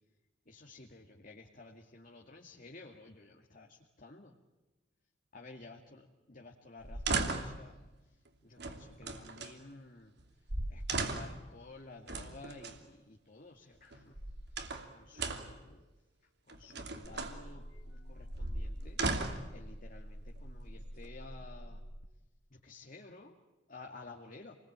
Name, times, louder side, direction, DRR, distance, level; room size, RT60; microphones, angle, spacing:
voice 1, 0.5-4.3 5.3-7.7 8.4-10.1 10.7-14.2 14.9-15.8 16.5-19.0 19.5-21.8 22.5-23.4 23.7-24.6, left 3 dB, 45° left, 1 dB, 2.2 m, -53 dB
sound 1, 6.8-7.6 8.6-9.5 10.2-10.3 10.5-11.4 12.1-12.8 13.9-14.9 15.2-15.6 16.5-17.4 18.2-19.5 20.4-21.1, right 3 dB, 60° right, 2.8 m, -37 dB
sound 2, 17.0-22.0, equal, 80° left, 2.4 m, -48 dB
28.5 x 21.0 x 8.9 m, 1.1 s
head